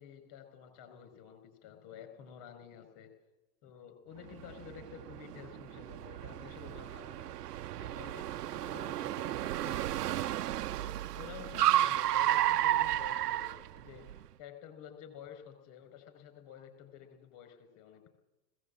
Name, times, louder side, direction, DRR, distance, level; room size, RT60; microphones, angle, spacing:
voice 1, 0.0-3.1 3.6-7.3 7.7-10.2 10.7-14.0 14.4-18.1, left 9 dB, 50° left, 7 dB, 5.6 m, -51 dB
Car, 4.3-14.2, right 13 dB, 80° right, 0.7 m, -32 dB
20.5 x 16.5 x 8.7 m, 0.99 s
hypercardioid pair, 95°, 47 cm